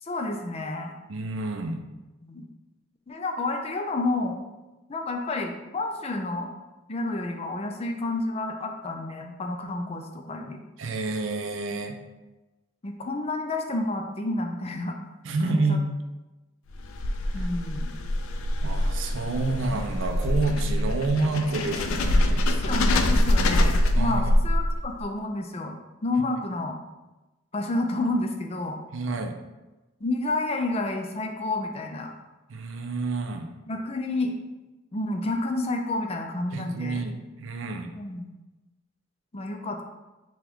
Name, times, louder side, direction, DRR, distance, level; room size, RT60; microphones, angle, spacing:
voice 1, 0.0-0.9 2.2-2.5 3.1-4.4 4.9-6.5 6.9-10.6 12.8-15.0 15.5-15.8 17.3-17.9 19.7-19.8 22.6-25.8 26.0-26.8 27.5-28.8 30.0-32.1 33.7-34.3 34.9-37.0 38.0-38.3 39.3-39.8, left 2 dB, 30° left, 3 dB, 0.4 m, -30 dB
voice 2, 1.1-1.8 10.8-12.0 15.2-15.9 17.4-17.5 18.6-22.4 23.9-24.4 28.9-29.4 32.5-33.5 36.5-37.9, right 3 dB, 65° right, 5 dB, 0.5 m, -29 dB
sound 1, 16.7-25.0, left 1 dB, 85° left, 0.4 m, -24 dB
5.9 x 2.3 x 3.5 m, 1.1 s
head